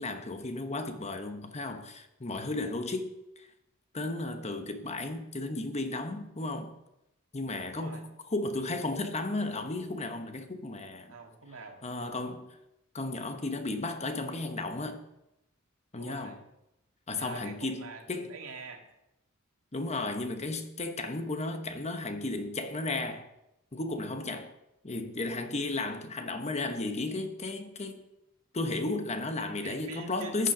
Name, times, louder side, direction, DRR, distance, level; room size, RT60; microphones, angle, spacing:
voice 1, 0.0-3.5 3.9-6.7 7.3-8.0 8.3-11.1 11.8-12.5 12.9-15.0 15.9-16.4 17.1-18.3 19.7-23.2 23.7-24.5 24.8-28.0 28.5-30.5, left 2 dB, 30° left, 1.1 m, -34 dB
voice 2, 7.7-8.0 11.1-11.8 16.0-16.4 17.1-18.8 29.6-30.5, right 3 dB, 80° right, 2.2 m, -45 dB
14.0 x 9.0 x 5.0 m
head